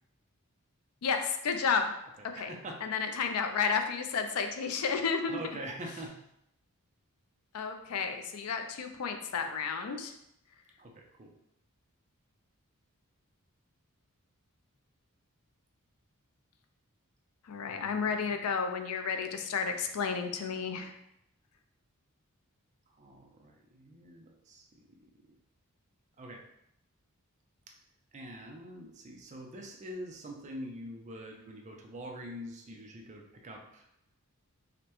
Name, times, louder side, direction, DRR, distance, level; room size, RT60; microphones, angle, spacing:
voice 1, 1.0-1.9 2.2-2.5 2.8-5.4 7.5-10.1 17.5-20.9, left 5 dB, 75° left, 6 dB, 0.4 m, -32 dB
voice 2, 2.2-2.8 5.3-6.1 10.8-11.3 17.7-18.4 22.9-25.4 26.2-26.4 28.1-33.9, right 1 dB, 35° right, 1 dB, 0.5 m, -45 dB
4.9 x 2.2 x 3.0 m, 0.79 s
head